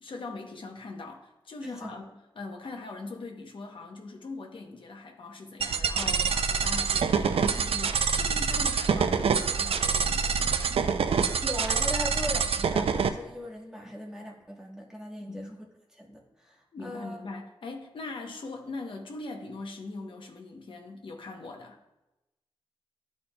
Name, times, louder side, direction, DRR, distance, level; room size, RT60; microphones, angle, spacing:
voice 1, 0.0-11.0 15.2-15.5 16.7-21.8, left 3 dB, 60° left, 2 dB, 0.8 m, -41 dB
voice 2, 1.6-2.0 11.4-15.6 15.9-17.2, equal, 5° right, -1 dB, 1.1 m, -39 dB
sound 1, 5.6-13.1, right 6 dB, 80° right, 0.4 m, -26 dB
12.0 x 4.2 x 2.2 m, 0.98 s
wide cardioid pair, 150°, 10 cm